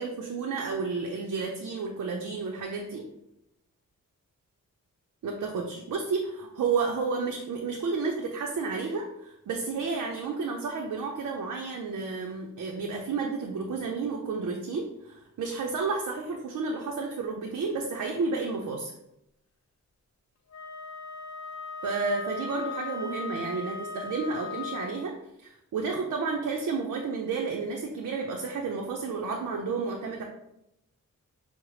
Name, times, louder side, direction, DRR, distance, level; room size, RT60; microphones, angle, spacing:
voice 1, 0.0-3.0 5.2-18.9 21.8-30.2, right 4 dB, 65° right, 0 dB, 0.6 m, -31 dB
Wind instrument woodwind instrument, 20.5-25.1, left 3 dB, 55° left, 0.5 m, -38 dB
6.1 x 2.1 x 3.1 m, 0.82 s
wide cardioid pair, 125°, 32 cm